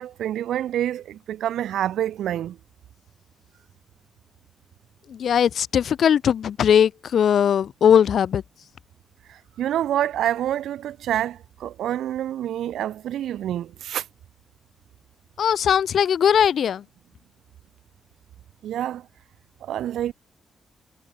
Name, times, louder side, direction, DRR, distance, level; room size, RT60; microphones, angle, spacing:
voice 1, 0.0-2.6 9.3-14.1 18.6-19.1 19.6-20.1, right 11 dB, 85° right, 2.5 m, -27 dB
voice 2, 5.1-8.4 15.4-16.8, left 8 dB, 60° left, 0.5 m, -19 dB
cardioid pair, 115°, 0 cm